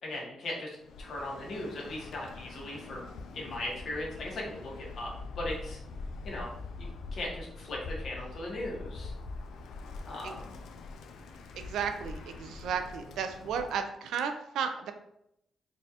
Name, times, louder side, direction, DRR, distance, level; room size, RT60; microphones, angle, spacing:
voice 1, 0.0-3.0 3.3-5.8 6.2-6.5 6.8-9.1 10.1-10.6, left 1 dB, 60° left, -3 dB, 1.1 m, -38 dB
Bird, 0.8-13.9, left 3 dB, 85° left, 0.3 m, -44 dB
voice 2, 11.6-14.9, right 7 dB, 85° right, 8 dB, 0.4 m, -34 dB
4.0 x 2.4 x 2.8 m, 0.77 s
cardioid pair, 100°, 0 cm